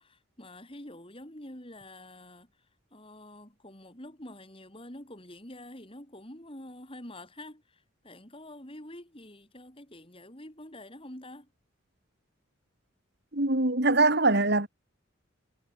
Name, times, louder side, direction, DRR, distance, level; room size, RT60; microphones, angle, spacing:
voice 1, 0.0-2.5 2.9-11.5, left 1 dB, 25° left, 4.7 m, -47 dB
voice 2, 13.3-14.7, right 2 dB, 50° right, 2.7 m, -23 dB
head